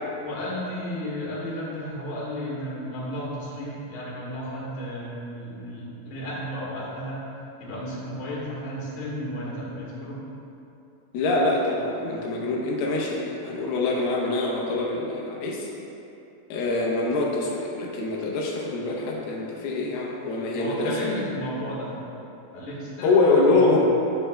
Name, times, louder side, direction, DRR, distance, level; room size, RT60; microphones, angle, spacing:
voice 1, 0.2-7.2 7.6-10.2 20.6-22.0 22.5-23.7, equal, 55° left, -7 dB, 2.5 m, -33 dB
voice 2, 11.1-15.7 16.5-20.9 23.0-23.8, left 3 dB, 90° left, -3 dB, 2.8 m, -24 dB
10.0 x 6.6 x 2.2 m, 2.9 s
omnidirectional pair, 4.3 m